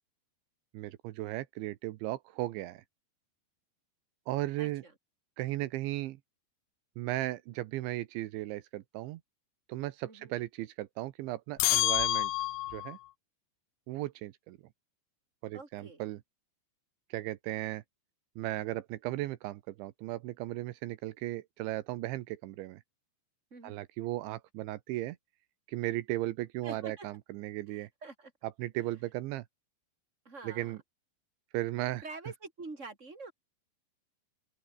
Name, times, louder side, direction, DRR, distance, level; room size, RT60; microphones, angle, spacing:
voice 1, 0.7-2.8 4.3-4.8 5.4-6.2 7.0-9.2 9.7-12.3 12.7-13.0 13.9-14.6 15.4-16.2 17.1-17.8 18.4-22.8 23.6-25.2 25.7-27.9 28.6-29.4 30.4-30.8 31.5-32.0, right 16 dB, 85° right, 3.3 m, -36 dB
voice 2, 4.6-4.9 10.0-10.3 15.5-16.0 23.5-23.9 26.6-27.1 27.7-28.3 28.8-29.0 30.3-30.8 32.0-33.3, right 3 dB, 15° right, 5.3 m, -46 dB
sound 1, 11.6-13.0, left 17 dB, 85° left, 3.5 m, -28 dB
open air
omnidirectional pair, 5.3 m